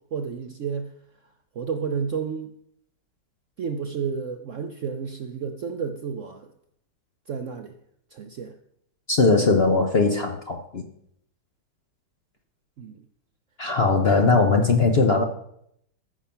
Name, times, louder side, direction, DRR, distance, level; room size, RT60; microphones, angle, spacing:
voice 1, 0.1-0.9 1.6-2.5 3.6-6.5 7.3-7.7 8.1-8.5 12.8-12.9 14.3-14.4, right 6 dB, 60° right, 6 dB, 0.8 m, -31 dB
voice 2, 9.1-10.8 13.6-15.2, left 3 dB, 45° left, 4 dB, 0.8 m, -20 dB
14.5 x 6.1 x 5.7 m, 0.73 s
omnidirectional pair, 2.0 m